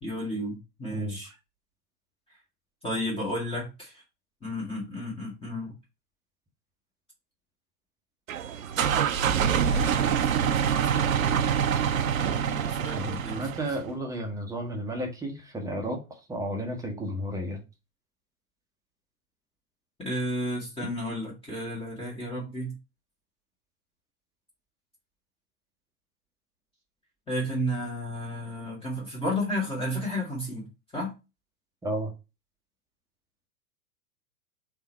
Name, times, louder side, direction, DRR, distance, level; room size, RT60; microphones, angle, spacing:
voice 1, 0.0-1.3 2.8-4.0 4.4-5.7 9.6-11.4 12.2-13.5 20.0-22.7 27.3-30.7 30.9-31.1, equal, 10° left, 1.5 m, -33 dB
sound 1, 8.3-13.8, right 8 dB, 65° right, 0.6 m, -25 dB
voice 2, 12.9-16.0 16.3-17.6 31.8-32.1, right 1 dB, 10° right, 0.9 m, -32 dB
3.6 x 3.2 x 4.3 m
figure-of-eight pair, 100°, 44 cm